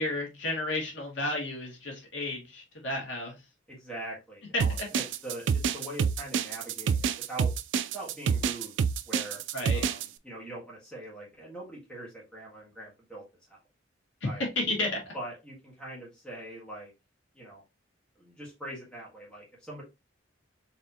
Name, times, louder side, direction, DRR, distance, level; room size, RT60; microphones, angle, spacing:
voice 1, 0.0-3.4 4.5-4.9 9.5-9.9 14.6-15.1, left 2 dB, 75° left, 0 dB, 1.7 m, -32 dB
voice 2, 3.7-7.5 7.9-8.7 9.1-9.4 9.7-13.2 13.5-13.6 14.2-14.4 15.1-16.9 17.3-17.6 18.2-19.8, right 1 dB, 5° left, -5 dB, 1.7 m, -42 dB
sound 1, 4.6-10.1, right 6 dB, 70° right, 0.3 m, -27 dB
4.2 x 3.4 x 2.8 m, 0.25 s
head